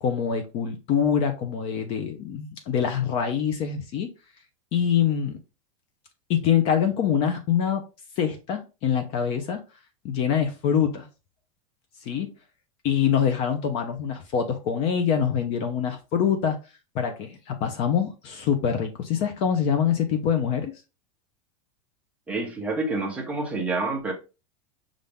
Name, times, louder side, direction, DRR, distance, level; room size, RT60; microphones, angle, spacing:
voice 1, 0.0-4.1 4.7-5.4 6.3-7.8 8.2-9.6 10.0-11.1 12.0-12.3 12.8-16.6 16.9-20.7, left 8 dB, 35° left, 0.6 m, -24 dB
voice 2, 22.3-24.1, right 3 dB, 10° right, 0.7 m, -28 dB
5.5 x 2.5 x 3.4 m
supercardioid pair, 165°, 18 cm